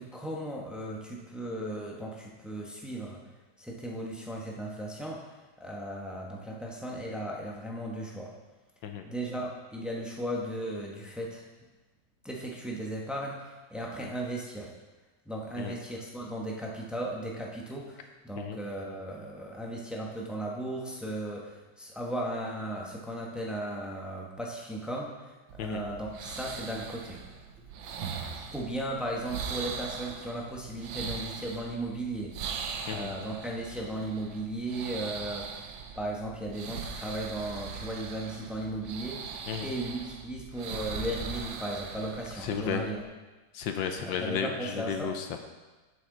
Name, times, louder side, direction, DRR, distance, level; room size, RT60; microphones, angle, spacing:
voice 1, 0.0-3.2 3.6-5.3 5.6-8.3 9.0-11.4 12.2-14.7 15.3-25.1 25.5-27.2 28.5-32.3 32.9-35.6 36.0-39.3 39.6-43.0 44.0-45.1, right 1 dB, ahead, -3 dB, 0.5 m, -36 dB
sound 1, 25.5-43.0, right 6 dB, 80° right, 1.5 m, -40 dB
voice 2, 42.4-42.8 43.5-45.4, left 7 dB, 80° left, 5 dB, 1.3 m, -33 dB
8.5 x 7.8 x 3.8 m, 1.2 s
omnidirectional pair, 2.1 m